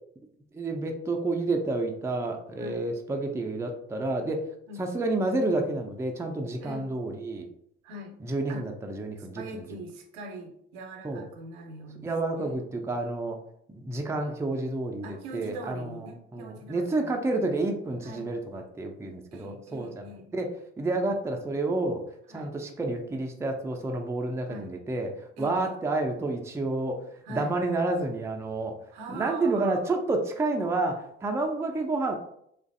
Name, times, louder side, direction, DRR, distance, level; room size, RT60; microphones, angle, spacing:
voice 1, 0.5-4.5 4.8-7.5 8.2-9.6 11.0-11.2 12.0-13.4 13.7-16.1 16.3-20.0 20.3-22.0 22.3-27.0 27.3-28.7 29.1-32.2, right 2 dB, 10° right, 3 dB, 0.4 m, -29 dB
voice 2, 2.6-2.9 4.7-4.8 6.6-7.0 7.8-8.1 8.5-8.7 9.2-12.1 12.3-12.6 15.0-17.2 18.0-18.3 19.3-20.3 22.3-22.5 24.5-24.7 25.4-25.7 27.2-27.6 28.9-30.0, right 1 dB, 75° right, 3 dB, 0.7 m, -42 dB
3.1 x 2.4 x 2.6 m, 0.71 s
hypercardioid pair, 55°, 34 cm